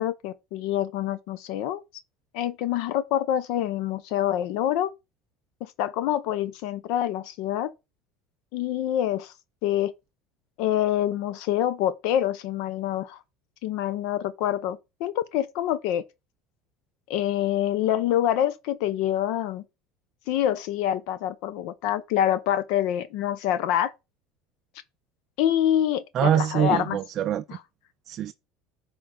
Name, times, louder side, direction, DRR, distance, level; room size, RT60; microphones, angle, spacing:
voice 1, 0.0-1.8 2.3-4.9 5.6-7.7 8.5-9.3 9.6-9.9 10.6-13.2 13.6-16.0 17.1-19.6 20.3-23.9 25.4-27.0 27.5-27.6, left 11 dB, 70° left, 0.6 m, -26 dB
voice 2, 26.1-27.5 28.1-28.3, right 10 dB, 40° right, 0.3 m, -24 dB
10.5 x 3.7 x 3.7 m
supercardioid pair, 135°, 0 cm